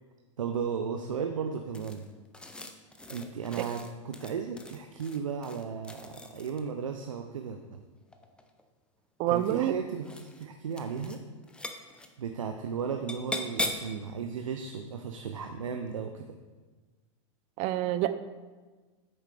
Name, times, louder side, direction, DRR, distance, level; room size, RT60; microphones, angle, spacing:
voice 1, 0.4-2.1 3.1-7.8 9.3-11.2 12.2-16.3, right 6 dB, 90° right, 6 dB, 0.6 m, -35 dB
sound 1, 1.7-6.8 8.0-8.6 9.3-9.7 10.0-10.4 10.7-11.2 11.4-12.1 13.1-14.0, left 2 dB, 5° left, 0.6 m, -39 dB
voice 2, 9.2-9.7 17.6-18.2, right 13 dB, 40° right, 12 dB, 0.5 m, -27 dB
8.6 x 6.5 x 3.3 m, 1.3 s
hypercardioid pair, 110°, 16 cm